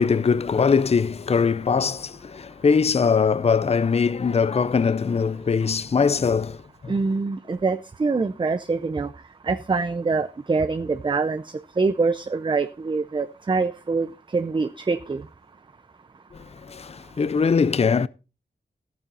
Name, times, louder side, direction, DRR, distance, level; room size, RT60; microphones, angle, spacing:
voice 1, 0.0-6.9 16.3-18.1, left 5 dB, 35° left, 0.5 m, -22 dB
voice 2, 6.9-9.1 9.5-11.4 11.8-14.1 14.3-15.2, right 4 dB, 30° right, 0.5 m, -24 dB
14.0 x 9.2 x 4.1 m
wide cardioid pair, 105°, 18 cm